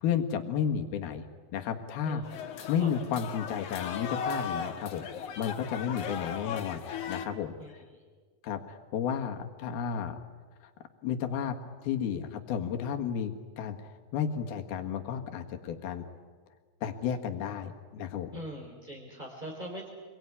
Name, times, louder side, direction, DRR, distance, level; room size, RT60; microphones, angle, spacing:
voice 1, 0.0-1.3 1.5-2.2 2.7-6.8 7.1-7.5 8.4-10.2 11.0-11.6 11.8-13.8 14.1-16.1 16.8-18.3, left 8 dB, 90° left, 5 dB, 3.6 m, -32 dB
sound 1, 2.2-7.3, left 6 dB, 60° left, 2.7 m, -37 dB
voice 2, 2.6-2.9 7.6-8.0 18.3-19.9, right 1 dB, 10° right, -1 dB, 3.4 m, -42 dB
27.0 x 22.5 x 9.8 m, 1.5 s
omnidirectional pair, 4.3 m